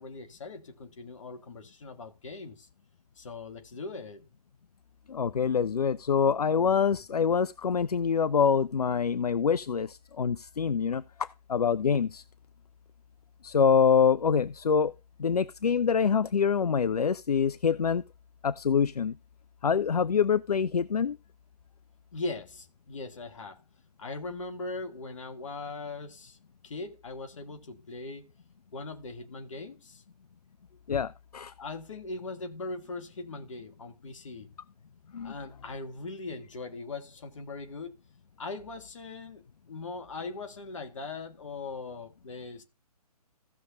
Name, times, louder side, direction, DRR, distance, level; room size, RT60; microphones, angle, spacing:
voice 1, 0.0-2.7 3.2-4.2 22.1-23.6 24.0-26.4 26.6-28.3 28.7-30.0 31.6-34.5 35.2-38.0 38.4-42.6, left 3 dB, 50° left, 1.6 m, -40 dB
voice 2, 5.1-9.9 10.2-11.0 11.5-12.2 13.4-14.9 15.2-18.0 18.4-19.1 19.6-21.2 30.9-31.1 31.3-31.5 35.1-35.3, left 6 dB, 75° left, 0.4 m, -25 dB
16.0 x 6.4 x 2.6 m
figure-of-eight pair, 130°, 20 cm